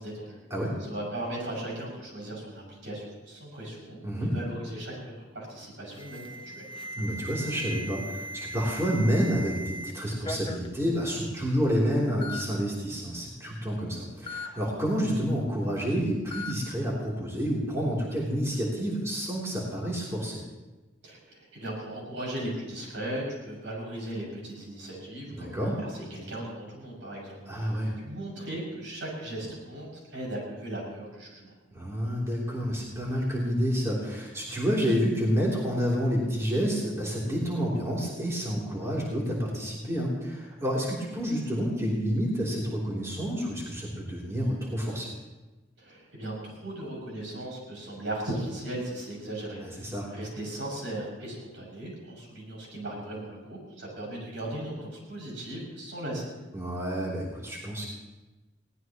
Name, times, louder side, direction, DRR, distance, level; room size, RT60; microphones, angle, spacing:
voice 1, 0.0-0.4 0.8-6.7 21.0-31.5 45.8-56.3, right 1 dB, 80° right, -3 dB, 6.8 m, -37 dB
voice 2, 4.0-4.3 7.0-20.4 25.3-25.8 27.5-27.9 31.7-45.1 49.6-50.1 56.5-57.9, equal, 15° right, -5 dB, 3.3 m, -29 dB
Alarm, 5.9-9.9 10.2-10.7 11.5-11.6 12.2-12.4 14.3-14.5 16.3-16.5, left 1 dB, 30° left, 0.8 m, -38 dB
21.5 x 18.0 x 3.1 m, 1.1 s
head